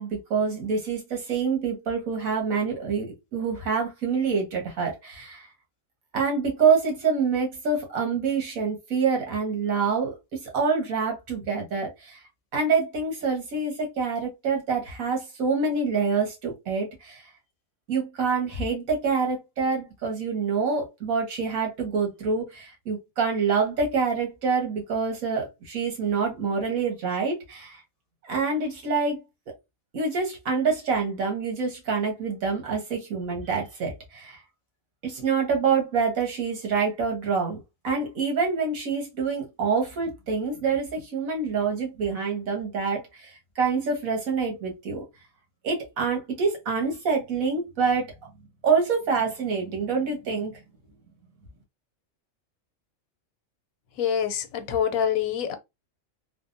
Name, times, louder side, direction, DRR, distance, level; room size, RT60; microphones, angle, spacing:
voice 1, 0.0-5.5 6.1-12.2 12.5-17.2 17.9-27.8 28.3-29.2 29.9-34.4 35.0-45.0 45.6-48.1 48.6-50.6, right 5 dB, 80° right, 1.6 m, -26 dB
voice 2, 54.0-55.6, left 8 dB, 90° left, 1.0 m, -25 dB
3.3 x 2.1 x 2.5 m
omnidirectional pair, 1.4 m